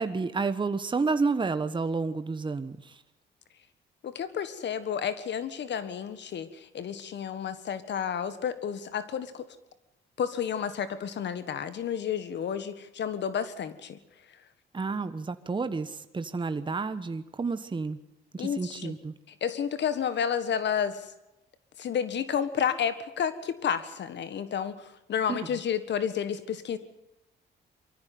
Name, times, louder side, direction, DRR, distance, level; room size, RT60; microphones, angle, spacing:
voice 1, 0.0-3.0 14.7-18.0 18.3-19.1 25.3-25.4, right 4 dB, 25° right, 11 dB, 1.2 m, -30 dB
voice 2, 4.0-9.5 10.2-14.0 18.4-18.9 19.4-21.1 21.8-26.8, left 8 dB, 60° left, 13 dB, 1.6 m, -31 dB
23.5 x 14.0 x 9.4 m, 0.90 s
cardioid pair, 90°, 20 cm